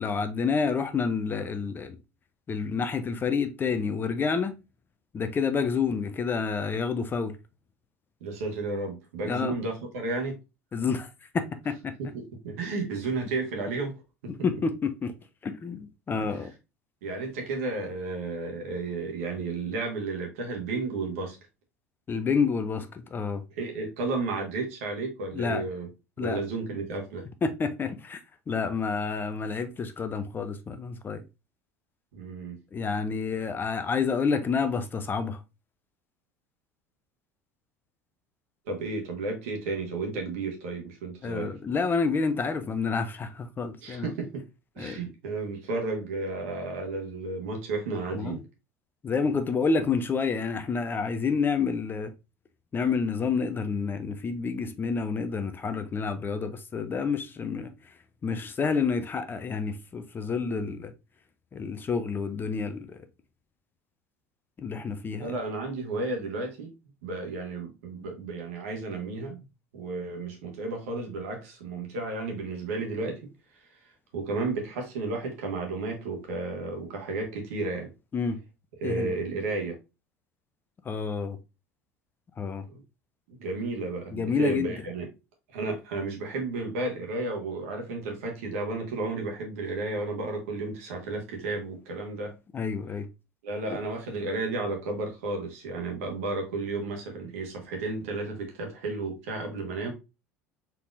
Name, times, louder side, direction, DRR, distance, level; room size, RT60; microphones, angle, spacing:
voice 1, 0.0-2.0 2.5-4.5 5.1-7.4 9.2-9.5 10.7-11.1 11.3-11.9 14.4-15.1 15.4-16.5 22.1-23.4 25.3-25.6 26.2-26.4 27.4-28.2 28.5-31.2 32.7-35.4 41.2-44.1 44.8-45.0 48.1-48.4 49.0-52.1 52.7-57.7 58.2-60.9 61.5-62.9 64.6-65.3 78.1-78.4 78.8-79.1 80.8-81.4 82.4-82.7 84.1-84.8 92.5-93.1, left 5 dB, 25° left, 0.5 m, -29 dB
voice 2, 8.2-10.4 12.0-14.3 16.4-16.5 17.0-21.4 23.5-25.9 26.2-27.3 32.1-32.6 38.7-41.5 43.8-44.5 44.7-48.4 60.4-60.7 65.1-66.7 67.0-69.4 69.7-73.3 74.1-77.9 78.8-79.8 82.7-82.8 83.3-85.1 85.5-92.3 93.4-99.9, right 3 dB, 65° right, 1.3 m, -33 dB
4.2 x 3.5 x 2.4 m
figure-of-eight pair, 70°, 8 cm